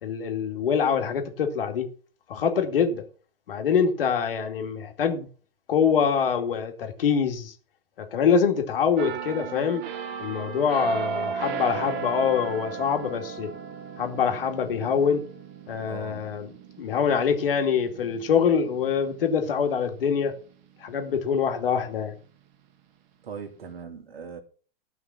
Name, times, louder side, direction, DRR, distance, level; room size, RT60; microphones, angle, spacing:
voice 1, 0.0-1.9 2.3-3.0 3.5-5.3 5.7-7.5 8.0-9.8 10.2-13.5 14.0-15.2 15.7-20.3 20.8-22.2, left 7 dB, 65° left, 2.6 m, -25 dB
sound 1, 9.0-20.5 20.9-21.2, right 6 dB, 45° right, 2.0 m, -36 dB
voice 2, 15.8-16.3 23.2-24.4, right 6 dB, 70° right, 2.6 m, -39 dB
15.0 x 5.8 x 6.0 m
figure-of-eight pair, 105°, 30 cm